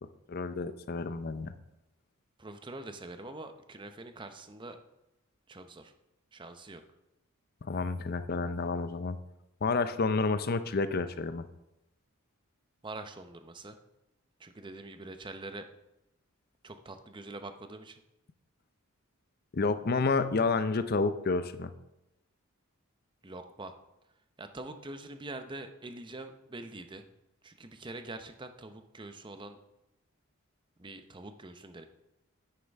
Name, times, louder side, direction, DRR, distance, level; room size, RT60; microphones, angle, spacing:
voice 1, 0.3-1.5 7.6-9.2 9.6-11.4 19.5-21.7, left 4 dB, 45° left, 12 dB, 0.5 m, -30 dB
voice 2, 2.4-4.8 5.5-5.9 6.3-6.8 12.8-13.8 14.4-15.7 16.6-18.0 23.2-23.7 24.4-27.1 27.4-29.6 30.8-31.9, right 2 dB, 20° right, 8 dB, 0.7 m, -44 dB
9.7 x 9.4 x 3.5 m, 0.90 s
head